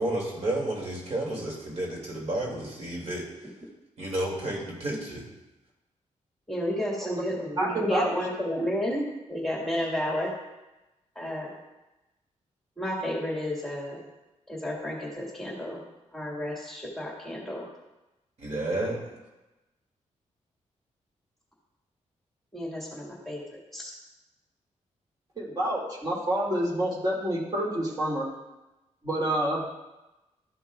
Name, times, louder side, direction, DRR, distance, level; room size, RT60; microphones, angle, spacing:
voice 1, 0.0-3.3 4.0-5.2 18.4-19.0, right 1 dB, 55° right, -3 dB, 2.5 m, -31 dB
voice 2, 6.5-9.0 9.3-10.3 11.1-11.5 12.8-14.0 14.5-15.8 16.1-17.7 22.5-23.4 23.7-23.9, equal, ahead, -4 dB, 1.8 m, -31 dB
voice 3, 7.6-8.2 25.4-28.3 29.0-29.6, right 1 dB, 30° right, -4 dB, 2.2 m, -28 dB
12.5 x 5.7 x 2.4 m, 1.0 s
cardioid pair, 105°, 13 cm